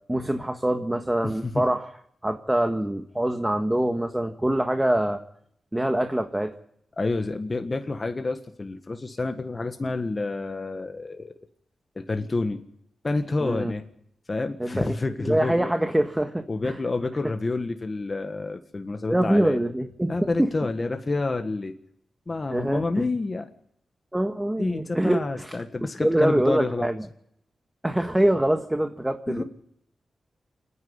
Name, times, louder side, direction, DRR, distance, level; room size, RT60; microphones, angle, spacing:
voice 1, 0.1-1.9 2.2-5.2 5.7-6.5 13.4-13.7 14.6-14.9 15.2-16.8 19.1-20.5 22.5-23.0 24.1-25.5 25.8-27.0 27.8-29.4, right 1 dB, 10° right, 5 dB, 1.6 m, -24 dB
voice 2, 1.2-1.6 7.0-11.3 11.9-12.6 13.0-13.8 14.3-15.7 16.5-19.6 20.1-21.7 22.3-23.5 24.6-26.9 29.3-29.4, left 3 dB, 40° left, 6 dB, 1.5 m, -28 dB
27.0 x 10.0 x 9.6 m, 0.74 s
cardioid pair, 60°, 0 cm